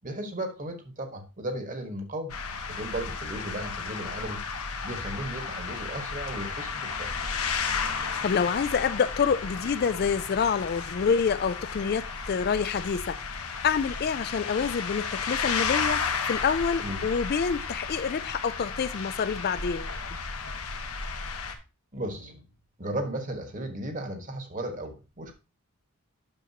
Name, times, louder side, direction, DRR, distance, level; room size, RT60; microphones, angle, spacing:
voice 1, 0.0-2.3 2.7-4.4 4.8-7.1 16.8-17.1 21.9-22.4 22.8-25.3, right 1 dB, 35° right, 1.4 m, -35 dB
sound 1, 2.3-21.5, left 5 dB, 80° left, 1.2 m, -33 dB
voice 2, 7.9-19.9, left 6 dB, 45° left, 0.3 m, -27 dB
9.1 x 6.6 x 2.8 m
head